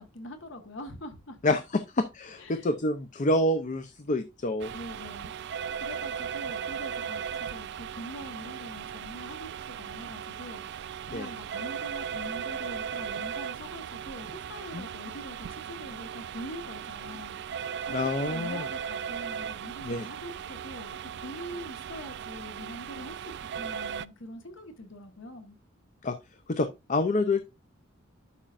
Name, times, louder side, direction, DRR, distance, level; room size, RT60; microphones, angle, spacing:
voice 1, 0.0-1.4 2.4-2.7 4.7-5.3 5.7-25.6, left 1 dB, 65° left, 1.3 m, -44 dB
voice 2, 1.4-4.7 11.1-11.3 14.7-14.9 17.9-18.6 19.8-20.1 26.0-26.2 26.5-27.4, left 2 dB, 40° left, 0.6 m, -27 dB
sound 1, 4.6-24.1, right 8 dB, 60° right, 0.4 m, -37 dB
11.5 x 5.6 x 2.5 m
head